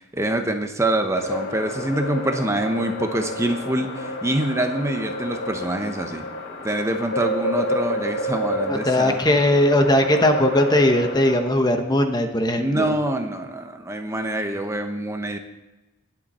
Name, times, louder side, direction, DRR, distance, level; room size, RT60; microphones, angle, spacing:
voice 1, 0.0-6.3 6.6-9.2 12.6-15.4, right 1 dB, 15° right, 5 dB, 0.9 m, -25 dB
sound 1, 1.2-11.4, left 1 dB, 65° left, 2.6 m, -29 dB
voice 2, 8.7-12.9, left 1 dB, 20° left, 6 dB, 1.0 m, -19 dB
20.0 x 7.8 x 4.3 m, 1.0 s
head